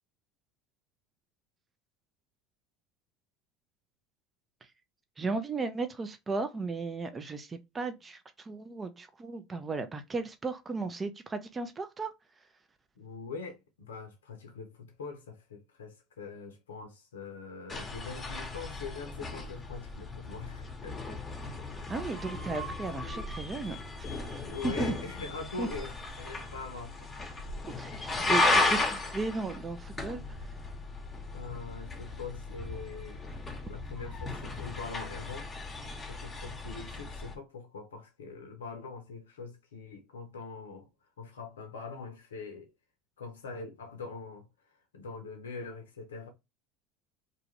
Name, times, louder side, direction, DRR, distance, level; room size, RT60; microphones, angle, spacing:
voice 1, 5.2-12.1 21.9-23.8 24.6-24.9 25.6-25.7 27.8-30.4, right 3 dB, 25° right, 0.5 m, -35 dB
voice 2, 13.0-21.2 24.4-27.1 31.3-33.2 33.7-35.5 36.1-40.9 41.2-42.7 43.2-44.5 44.9-46.3, left 4 dB, 90° left, 0.5 m, -43 dB
sound 1, 17.7-37.4, left 2 dB, 20° left, 0.9 m, -35 dB
2.6 x 2.4 x 3.0 m
hypercardioid pair, 80°, 0 cm